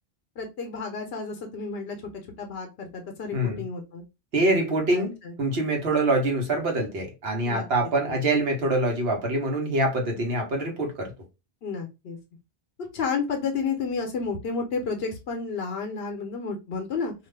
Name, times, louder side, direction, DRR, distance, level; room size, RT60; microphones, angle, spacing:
voice 1, 0.4-2.0 2.4-4.0 4.9-5.3 7.4-7.6 8.1-8.2 11.6-12.2 12.9-17.1, left 5 dB, 75° left, 0.9 m, -31 dB
voice 2, 3.3-3.6 4.3-11.1, right 2 dB, 70° right, 1.1 m, -25 dB
2.5 x 2.4 x 3.2 m
omnidirectional pair, 1.1 m